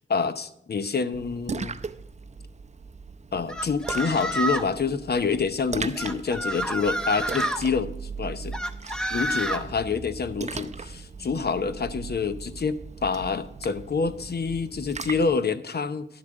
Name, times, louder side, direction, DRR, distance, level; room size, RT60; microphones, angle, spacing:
voice 1, 0.0-1.8 3.3-7.9 8.2-8.6 9.1-16.1, left 5 dB, 50° left, 12 dB, 0.8 m, -27 dB
Splash splatter, 1.1-15.4, right 4 dB, 35° right, 0.6 m, -38 dB
sound 1, 3.5-4.8 6.0-7.6 8.5-9.6, right 1 dB, 5° left, 1.0 m, -29 dB
11.5 x 9.9 x 3.9 m, 0.80 s
wide cardioid pair, 90°, 21 cm